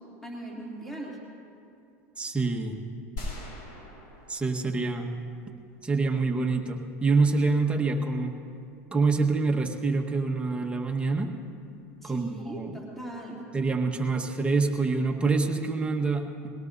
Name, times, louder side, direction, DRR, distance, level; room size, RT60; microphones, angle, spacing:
voice 1, 0.2-1.2 12.0-13.4, right 1 dB, 5° left, -4 dB, 3.1 m, -39 dB
voice 2, 2.2-2.8 4.3-5.1 5.8-8.4 8.9-11.3 12.0-12.7 13.5-16.5, right 3 dB, 15° right, 1 dB, 1.4 m, -26 dB
sound 1, 3.2-5.4, left 1 dB, 60° left, 4.1 m, -41 dB
22.0 x 18.0 x 2.7 m, 2.5 s
hypercardioid pair, 95°, 8 cm